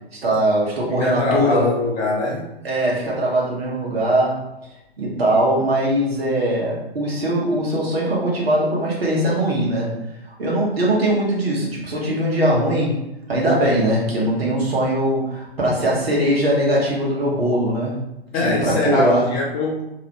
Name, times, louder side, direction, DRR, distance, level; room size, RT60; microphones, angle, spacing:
voice 1, 0.2-1.7 2.6-4.5 5.0-9.9 10.4-12.9 13.3-18.0 18.4-19.2, right 1 dB, 75° right, -4 dB, 1.0 m, -20 dB
voice 2, 0.9-2.5 18.3-19.8, left 2 dB, 25° left, -4 dB, 0.6 m, -22 dB
2.9 x 2.0 x 2.9 m, 0.90 s
figure-of-eight pair, 110°, 31 cm